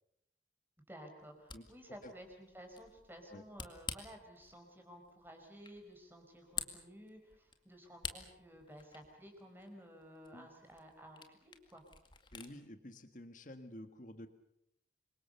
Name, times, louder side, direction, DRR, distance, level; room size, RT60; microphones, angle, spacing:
voice 1, 0.9-11.8, equal, 10° right, 3 dB, 5.0 m, -54 dB
Camera, 1.2-12.5, left 6 dB, 25° left, 2.1 m, -50 dB
voice 2, 12.3-14.3, left 1 dB, 45° left, 8 dB, 1.7 m, -50 dB
27.5 x 24.0 x 6.9 m, 0.77 s
head